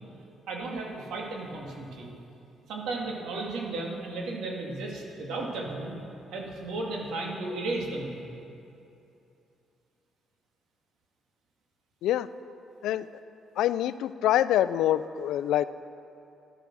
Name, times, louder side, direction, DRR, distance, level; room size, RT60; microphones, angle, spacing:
voice 1, 0.5-2.1 2.7-6.0 6.3-8.2, right 2 dB, 85° right, -1 dB, 2.2 m, -34 dB
voice 2, 13.6-15.7, left 12 dB, 85° left, 15 dB, 0.4 m, -25 dB
12.5 x 11.5 x 6.2 m, 2.7 s
cardioid pair, 90°, 0 cm